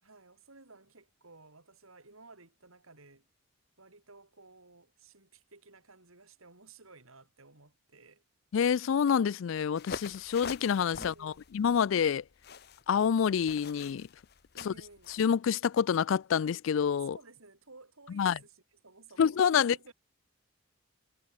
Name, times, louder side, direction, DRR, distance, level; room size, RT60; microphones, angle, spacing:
voice 1, 0.0-3.3 3.8-8.2 10.9-11.4 14.5-15.1 17.1-19.9, right 3 dB, 85° right, 4.9 m, -56 dB
voice 2, 8.5-12.2 12.9-14.1 14.7-14.8 15.2-17.2 18.1-18.3 19.2-19.7, left 7 dB, 65° left, 0.3 m, -27 dB
sound 1, 9.8-15.2, left 5 dB, 50° left, 0.9 m, -45 dB
head